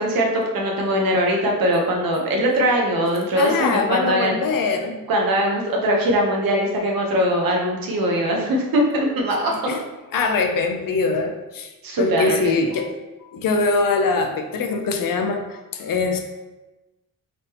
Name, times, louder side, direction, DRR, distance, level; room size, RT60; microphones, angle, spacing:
voice 1, 0.0-4.4 5.1-9.5 11.8-12.6, equal, 85° right, -1 dB, 0.9 m, -21 dB
voice 2, 3.3-5.0 9.7-9.8 10.1-11.7 12.0-12.9 13.3-16.2, left 4 dB, 75° left, 4 dB, 0.6 m, -22 dB
4.0 x 3.3 x 2.9 m, 1.1 s
wide cardioid pair, 155°, 34 cm